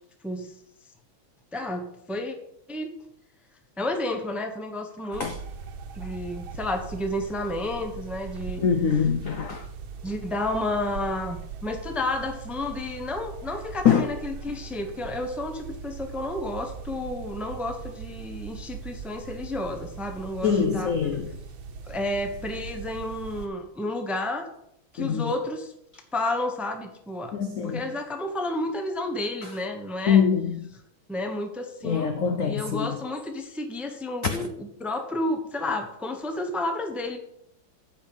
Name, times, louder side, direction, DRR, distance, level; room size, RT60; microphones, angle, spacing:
voice 1, 1.5-2.4 2.7-2.9 3.8-5.3 6.0-8.6 10.0-20.9 21.9-24.5 24.9-25.7 26.1-27.3 27.6-30.2 31.1-37.2, left 1 dB, ahead, 0.7 m, -31 dB
sound 1, 5.1-23.5, right 6 dB, 80° right, 1.7 m, -40 dB
voice 2, 8.6-9.7 13.8-14.1 20.4-21.3 25.0-25.3 27.3-27.8 30.1-30.6 31.8-33.0 34.3-34.5, left 7 dB, 70° left, 0.7 m, -23 dB
8.8 x 5.6 x 7.2 m
omnidirectional pair, 2.2 m